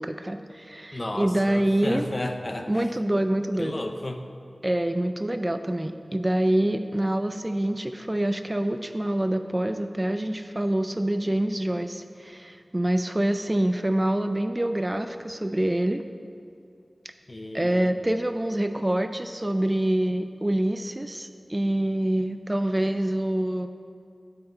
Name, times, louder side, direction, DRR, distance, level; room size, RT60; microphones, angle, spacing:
voice 1, 0.0-2.1 2.7-3.8 4.6-16.0 17.5-23.7, right 1 dB, 25° right, 8 dB, 0.3 m, -26 dB
voice 2, 0.9-2.9 3.6-4.2 17.3-18.0, left 1 dB, 40° left, 6 dB, 0.5 m, -33 dB
7.9 x 5.6 x 4.3 m, 2.4 s
wide cardioid pair, 60°, 0 cm